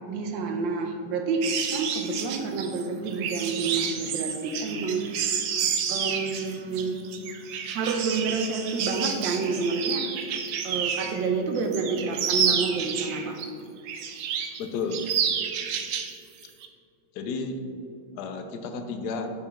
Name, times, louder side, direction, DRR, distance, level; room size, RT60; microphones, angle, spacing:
voice 1, 0.1-5.4 5.9-7.0 7.7-10.1 10.6-13.4, right 4 dB, 70° right, 4 dB, 1.3 m, -29 dB
sound 1, 1.4-11.2 11.6-13.5 13.9-14.6 14.9-16.1 16.4-16.7, right 7 dB, 90° right, 0.8 m, -30 dB
voice 2, 14.6-15.1 17.1-17.6 18.2-19.3, left 4 dB, 75° left, 6 dB, 0.9 m, -32 dB
8.3 x 5.1 x 3.4 m, 2.6 s
omnidirectional pair, 2.3 m